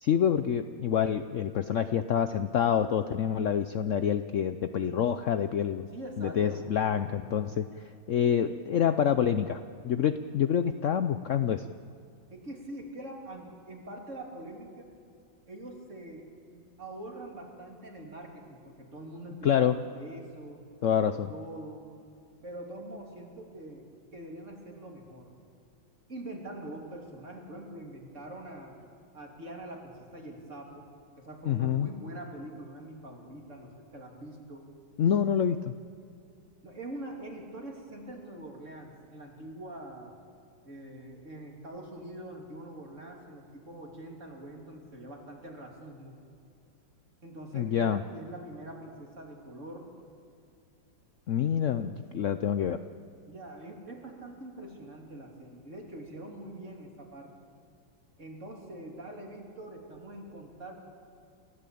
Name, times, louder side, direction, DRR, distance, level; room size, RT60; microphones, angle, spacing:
voice 1, 0.0-5.8 6.2-7.7 8.1-11.7 19.4-19.8 20.8-21.3 31.5-31.9 35.0-35.7 47.5-48.0 51.3-52.8, left 8 dB, 80° left, 10 dB, 0.6 m, -27 dB
voice 2, 5.9-6.7 12.3-14.9 15.5-16.3 16.5-20.6 21.3-21.8 22.4-23.8 24.1-25.3 26.1-28.8 29.1-30.9 31.2-34.7 36.6-40.2 40.7-46.2 47.2-49.9 53.3-57.3 58.2-60.7, right 1 dB, 35° right, 0 dB, 3.4 m, -44 dB
29.0 x 14.5 x 8.5 m, 2.5 s
omnidirectional pair, 2.1 m